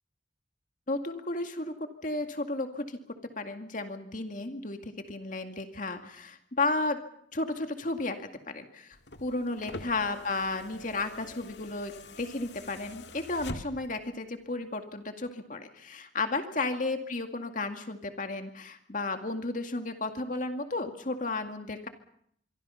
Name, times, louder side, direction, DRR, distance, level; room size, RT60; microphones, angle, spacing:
voice 1, 0.9-3.0 3.4-7.0 7.3-11.9 12.2-21.9, left 2 dB, 45° left, 6 dB, 2.2 m, -33 dB
sound 1, 8.9-14.1 15.3-15.4, left 2 dB, 70° left, 2.0 m, -45 dB
25.5 x 24.5 x 5.7 m, 0.66 s
head